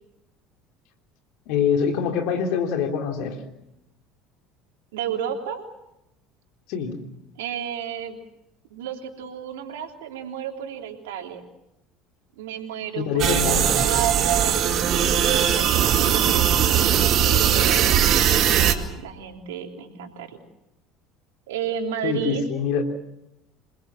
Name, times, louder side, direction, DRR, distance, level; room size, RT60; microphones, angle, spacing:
voice 1, 1.5-3.4 6.7-7.0 13.0-13.9 22.0-22.8, left 6 dB, 65° left, 4 dB, 3.5 m, -24 dB
voice 2, 4.9-5.6 7.3-8.2 8.7-11.4 12.4-14.6 15.1-20.4 21.5-22.4, right 8 dB, 75° right, 3 dB, 3.3 m, -32 dB
sound 1, 13.2-18.7, right 9 dB, 50° right, 2.3 m, -20 dB
27.5 x 20.5 x 7.6 m, 0.87 s
hypercardioid pair, 65°, 0 cm